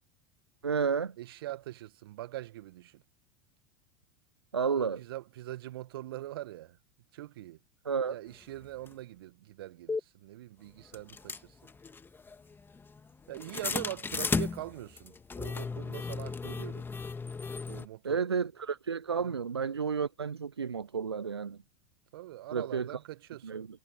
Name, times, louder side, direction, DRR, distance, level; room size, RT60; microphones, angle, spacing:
voice 1, 0.6-1.1 4.5-5.0 7.9-8.2 18.0-21.6 22.5-22.9 23.4-23.7, right 6 dB, 90° right, 0.4 m, -31 dB
voice 2, 1.2-3.0 4.7-6.8 7.1-7.6 8.1-11.6 13.3-16.9 17.7-18.3 19.1-19.4 22.1-23.5, right 15 dB, 65° right, 1.8 m, -43 dB
sound 1, 8.9-9.0 9.9-10.0 10.9-17.9, left 4 dB, 15° left, 1.8 m, -35 dB
figure-of-eight pair, 80°, 13 cm